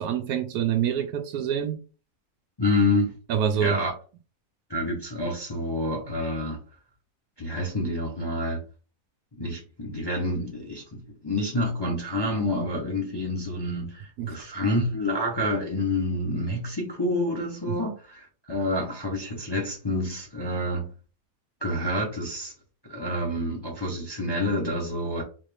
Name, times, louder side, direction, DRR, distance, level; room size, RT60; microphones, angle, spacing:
voice 1, 0.0-1.8 3.3-3.8 14.2-14.3 17.7-17.8, right 8 dB, 75° right, 1.0 m, -26 dB
voice 2, 2.6-3.1 3.6-3.9 4.7-6.6 7.4-8.6 9.4-20.8 21.6-22.5 22.9-25.2, left 1 dB, 25° left, 0.6 m, -28 dB
4.0 x 2.4 x 3.3 m
omnidirectional pair, 1.7 m